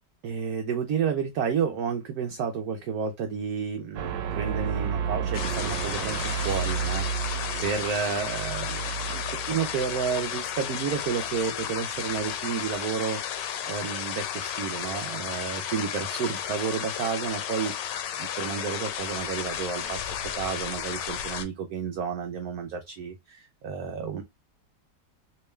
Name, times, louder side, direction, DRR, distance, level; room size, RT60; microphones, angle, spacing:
voice 1, 0.2-17.7 18.2-24.2, right 6 dB, 70° right, 0.9 m, -31 dB
sound 1, 4.0-12.5, right 7 dB, 85° right, 1.3 m, -33 dB
sound 2, 5.3-21.5, left 9 dB, 80° left, 1.2 m, -33 dB
3.4 x 3.0 x 3.1 m
omnidirectional pair, 1.9 m